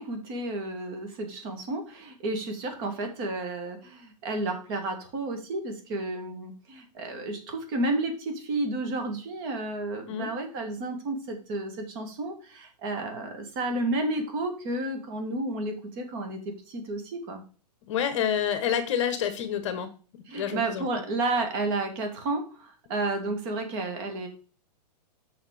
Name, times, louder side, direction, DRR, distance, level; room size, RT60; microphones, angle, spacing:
voice 1, 0.0-17.4 20.3-24.3, right 2 dB, 35° right, 5 dB, 2.2 m, -31 dB
voice 2, 17.9-19.9 20.3-20.9, left 8 dB, 45° left, 9 dB, 1.3 m, -28 dB
7.1 x 5.9 x 5.0 m, 0.38 s
hypercardioid pair, 155°, 21 cm